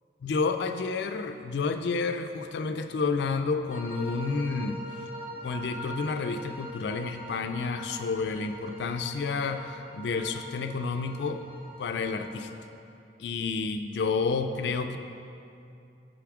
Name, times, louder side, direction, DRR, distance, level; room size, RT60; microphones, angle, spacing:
voice 1, 0.2-4.8 5.4-11.4 11.8-12.5 13.2-15.0, left 4 dB, 75° left, 7 dB, 0.4 m, -30 dB
sound 1, 3.7-12.6, equal, 10° right, 0.7 m, -43 dB
6.9 x 5.3 x 4.8 m, 2.6 s
head